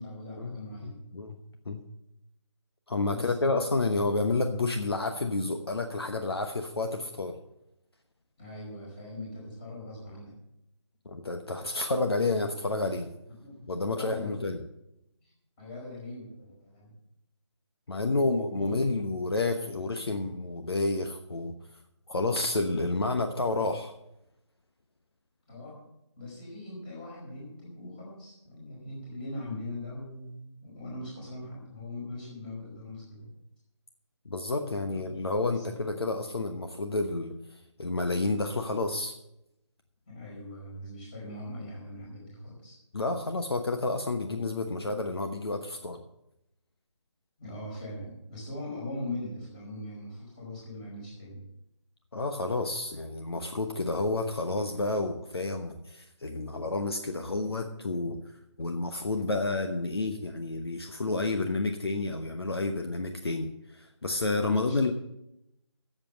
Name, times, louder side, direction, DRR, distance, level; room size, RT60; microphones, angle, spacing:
voice 1, 0.0-1.0 3.1-3.5 8.4-10.3 13.4-14.4 15.2-15.3 15.6-16.9 18.0-18.9 25.5-25.8 26.2-33.3 34.8-35.1 35.5-35.6 40.1-42.8 47.4-51.4 64.5-64.9, left 1 dB, 15° left, -4 dB, 4.9 m, -41 dB
voice 2, 0.8-1.4 1.7-1.8 2.9-7.4 11.0-13.1 13.7-14.6 17.9-21.5 22.1-23.9 34.2-39.1 42.9-46.0 52.1-64.9, left 2 dB, 60° left, 5 dB, 1.1 m, -30 dB
11.5 x 7.7 x 7.7 m, 0.84 s
figure-of-eight pair, 155°, 15 cm